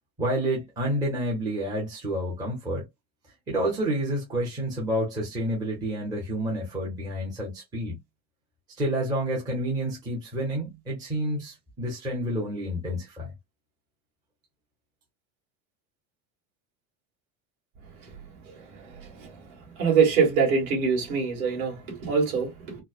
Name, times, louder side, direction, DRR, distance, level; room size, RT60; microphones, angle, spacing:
voice 1, 0.2-2.9 3.5-8.0 8.8-13.3, right 1 dB, 10° right, 0.7 m, -29 dB
voice 2, 19.8-22.8, right 5 dB, 45° right, 2.1 m, -24 dB
4.5 x 2.1 x 2.3 m
cardioid pair, 180°, 41 cm